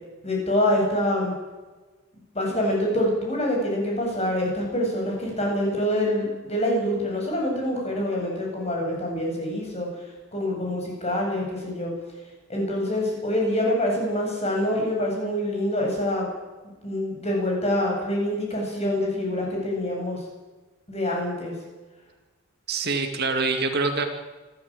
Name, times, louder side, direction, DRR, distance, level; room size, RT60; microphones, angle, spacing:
voice 1, 0.2-1.3 2.3-9.9 10.3-12.0 12.5-16.3 16.8-20.2 20.9-21.6, left 1 dB, 30° left, 0 dB, 8.0 m, -25 dB
voice 2, 22.7-24.0, right 4 dB, 45° right, 5 dB, 2.3 m, -25 dB
27.0 x 13.0 x 9.0 m, 1.2 s
head